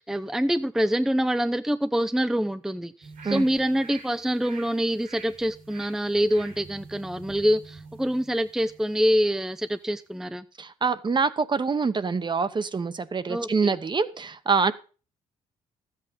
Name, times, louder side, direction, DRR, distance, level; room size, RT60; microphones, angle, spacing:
voice 1, 0.0-10.4 13.3-13.8, equal, 5° right, 11 dB, 0.5 m, -25 dB
sound 1, 3.0-9.4 9.8-9.9, right 4 dB, 80° right, 3.9 m, -47 dB
voice 2, 10.6-14.7, right 5 dB, 35° right, 13 dB, 1.0 m, -25 dB
13.0 x 8.3 x 5.3 m, 0.37 s
cardioid pair, 80°, 14 cm